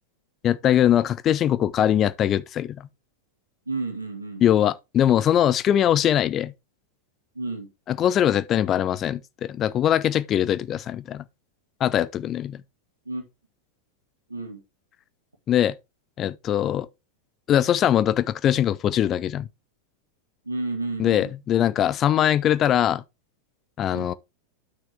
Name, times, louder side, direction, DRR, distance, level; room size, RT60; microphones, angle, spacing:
voice 1, 0.4-2.9 4.4-6.5 7.9-11.2 11.8-12.6 15.5-15.8 16.2-16.9 17.5-19.5 21.0-23.0 23.8-24.1, left 10 dB, 30° left, 0.5 m, -22 dB
voice 2, 3.7-4.4 7.4-7.7 13.1-13.2 14.3-14.6 20.5-21.3 23.9-24.1, right 3 dB, 80° right, 1.9 m, -31 dB
9.6 x 6.1 x 3.5 m
figure-of-eight pair, 90°, 0 cm